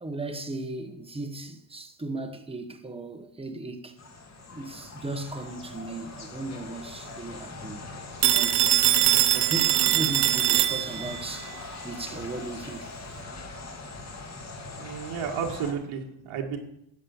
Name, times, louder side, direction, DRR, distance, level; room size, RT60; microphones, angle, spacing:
voice 1, 0.0-4.0 4.5-7.8 8.3-8.8 9.3-11.5 11.8-13.0, right 2 dB, 10° right, 1.2 m, -36 dB
sound 1, 4.0-15.7, left 3 dB, 30° left, 2.2 m, -41 dB
Telephone, 8.2-11.2, right 12 dB, 50° right, 0.7 m, -22 dB
voice 2, 14.8-16.6, right 7 dB, 85° right, 2.0 m, -32 dB
11.0 x 7.6 x 7.1 m
cardioid pair, 125°, 49 cm